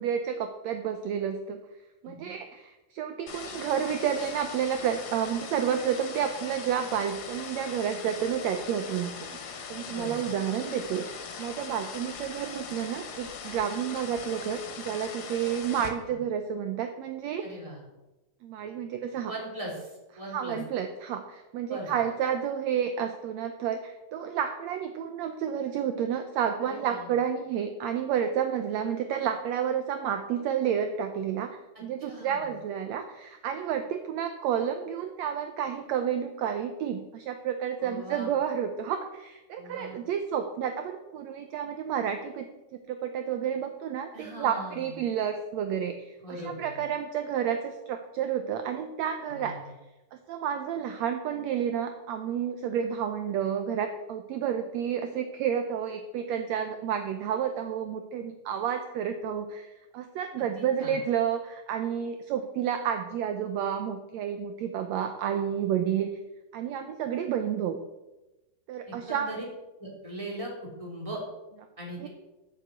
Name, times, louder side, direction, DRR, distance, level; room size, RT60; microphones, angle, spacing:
voice 1, 0.0-1.6 2.0-9.2 9.7-11.1 11.4-17.4 18.4-19.3 20.3-49.6 50.1-66.1 66.5-67.8 68.7-69.3 72.0-72.1, right 8 dB, 75° right, 7 dB, 1.7 m, -30 dB
sound 1, 3.3-15.9, left 6 dB, 80° left, 3.2 m, -41 dB
voice 2, 9.9-10.3 16.1-16.2 17.4-17.8 19.2-20.6 21.7-21.9 26.6-27.1 32.0-32.5 37.8-38.3 39.6-40.0 44.1-45.0 46.2-46.9 49.2-49.7 60.4-61.0 68.9-69.4 69.8-71.2 71.8-72.1, right 1 dB, 10° right, -2 dB, 3.3 m, -40 dB
11.0 x 7.1 x 8.0 m, 1.0 s
omnidirectional pair, 3.8 m